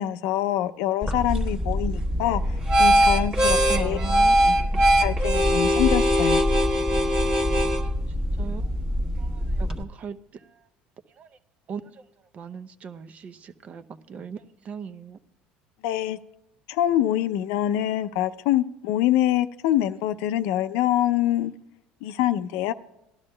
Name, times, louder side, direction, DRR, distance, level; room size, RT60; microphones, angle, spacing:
voice 1, 0.0-4.0 4.4-4.5 5.0-6.4 15.8-16.2 16.7-21.5 22.0-22.7, left 12 dB, 80° left, 12 dB, 0.4 m, -25 dB
sound 1, 1.0-9.8, equal, 20° right, 1.2 m, -22 dB
voice 2, 3.7-4.9 8.4-8.7 9.2-10.7 11.2-11.3 11.7-12.0 12.3-15.2, right 6 dB, 40° right, 10 dB, 0.6 m, -39 dB
18.5 x 12.0 x 2.2 m, 0.91 s
supercardioid pair, 110°, 4 cm